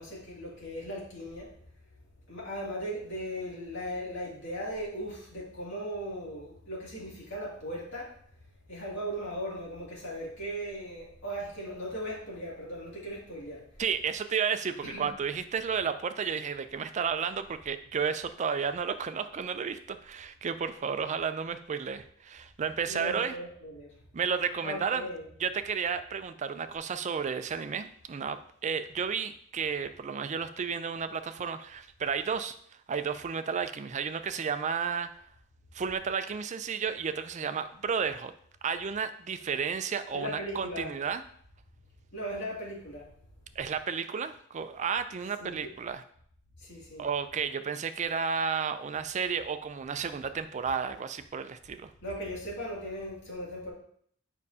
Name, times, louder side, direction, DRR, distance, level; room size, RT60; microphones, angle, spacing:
voice 1, 0.0-1.5 2.3-8.1 8.7-13.6 14.8-15.1 22.9-23.9 24.6-25.3 40.1-40.9 42.1-43.1 45.4-45.7 46.6-47.1 52.0-53.7, equal, 60° left, -5 dB, 2.5 m, -38 dB
voice 2, 13.8-23.4 24.1-25.0 25.4-32.6 32.9-35.1 35.7-38.3 38.6-41.2 43.6-46.0 47.0-51.9, right 6 dB, 35° right, 10 dB, 0.4 m, -32 dB
7.3 x 5.4 x 2.8 m, 0.62 s
head